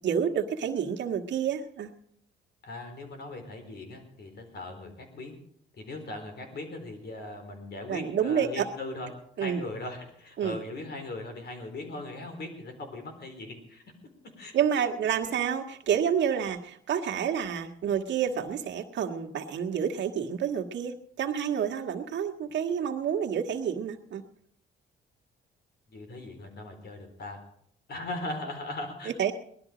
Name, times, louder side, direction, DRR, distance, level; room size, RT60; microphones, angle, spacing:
voice 1, 0.0-1.9 7.9-8.7 9.4-9.6 10.4-10.6 14.5-24.2 29.0-29.3, right 8 dB, 65° right, 3 dB, 1.6 m, -29 dB
voice 2, 2.6-5.3 5.8-9.1 9.4-13.8 14.4-14.5 25.9-27.4 27.9-29.1, left 2 dB, 55° left, 5 dB, 3.9 m, -39 dB
19.0 x 12.0 x 5.0 m, 0.67 s
cardioid pair, 90°, 20 cm